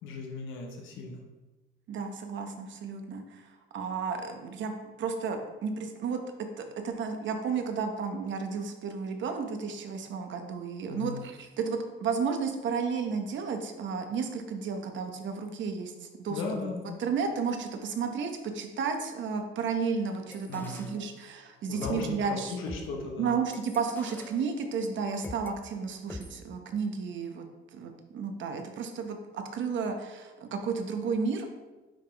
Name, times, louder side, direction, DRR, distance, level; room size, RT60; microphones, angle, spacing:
voice 1, 0.0-1.2 10.9-11.2 16.3-17.0 20.5-21.0 21.7-22.0 22.3-23.3, left 3 dB, 85° left, 1 dB, 1.1 m, -37 dB
voice 2, 1.9-3.5 3.7-4.7 5.0-6.2 6.6-16.4 17.0-22.6 23.2-27.5 27.7-31.5, right 5 dB, 70° right, 5 dB, 0.9 m, -32 dB
sound 1, 20.3-21.5 21.8-25.5 26.1-26.4, left 1 dB, 10° left, 0.4 m, -45 dB
9.0 x 3.6 x 3.4 m, 1.2 s
cardioid pair, 90°, 20 cm